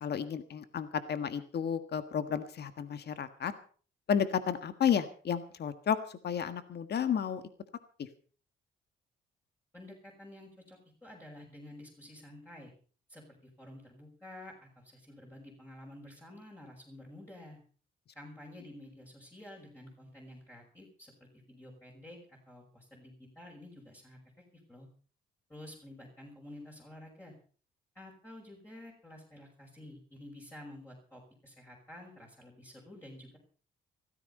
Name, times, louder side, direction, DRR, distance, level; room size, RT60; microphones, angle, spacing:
voice 1, 0.0-3.5 4.1-7.4 8.0-8.1, left 8 dB, 55° left, 11 dB, 1.6 m, -32 dB
voice 2, 9.7-12.7 13.1-17.6 18.1-24.2 24.5-24.9 25.5-27.3 27.9-33.4, left 1 dB, 10° left, -3 dB, 6.1 m, -51 dB
15.5 x 14.0 x 5.5 m, 0.43 s
cardioid pair, 90°, 20 cm